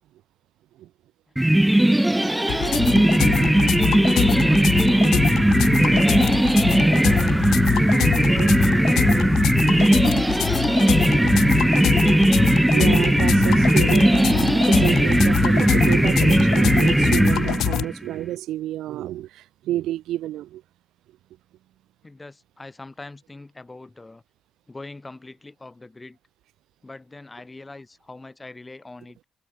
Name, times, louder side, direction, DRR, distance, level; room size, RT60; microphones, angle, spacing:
sound 1, 1.4-17.9, right 1 dB, 5° right, 0.3 m, -18 dB
voice 1, 1.9-3.1 3.4-5.4 5.8-7.9 8.4-9.3 9.9-11.3 22.0-24.2 24.7-26.2 26.8-29.2, left 2 dB, 20° left, 4.1 m, -42 dB
sound 2, 2.5-17.8, left 12 dB, 80° left, 0.4 m, -25 dB
voice 2, 3.2-3.8 5.0-5.1 5.7-5.8 8.3-8.6 9.0-9.3 11.2-11.4 12.0-12.3 12.7-20.6, right 14 dB, 85° right, 1.1 m, -30 dB
cardioid pair, 90°, 0 cm